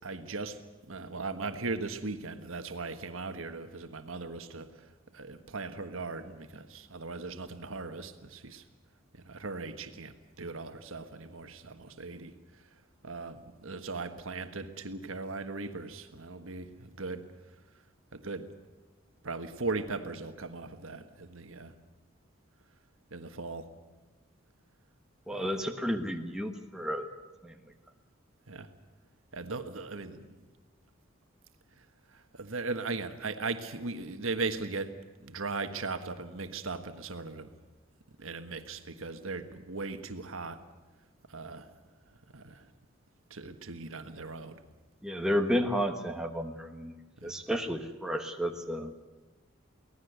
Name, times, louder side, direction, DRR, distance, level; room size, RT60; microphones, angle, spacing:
voice 1, 0.0-0.6 0.9-4.7 5.1-8.6 9.1-12.3 13.0-17.2 18.1-18.5 19.2-21.7 23.1-23.7 25.4-25.6 28.5-28.7 29.3-30.3 32.1-34.9 35.2-37.5 38.2-40.6 41.3-41.7 42.3-42.7 43.3-44.6 47.2-47.4, right 3 dB, 80° right, 8 dB, 1.5 m, -38 dB
voice 2, 25.3-27.1 27.4-27.6 45.0-47.0 47.2-48.9, equal, 5° right, 3 dB, 1.3 m, -32 dB
24.0 x 17.5 x 8.1 m, 1.2 s
head